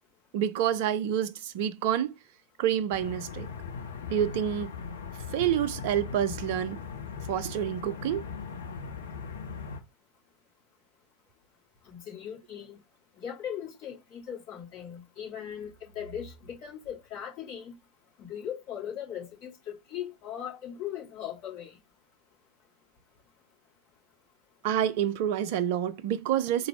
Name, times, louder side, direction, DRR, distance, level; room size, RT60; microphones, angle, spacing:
voice 1, 0.3-2.1 2.6-3.5 4.1-4.7 5.3-6.8 7.3-8.2 24.6-26.7, right 10 dB, 50° right, 0.5 m, -28 dB
sound 1, 2.9-9.8, left 6 dB, 65° left, 0.8 m, -39 dB
voice 2, 11.9-12.8 13.2-17.7 18.2-21.8, left 9 dB, 45° left, 2.4 m, -39 dB
4.0 x 2.5 x 4.2 m
figure-of-eight pair, 90°, 0 cm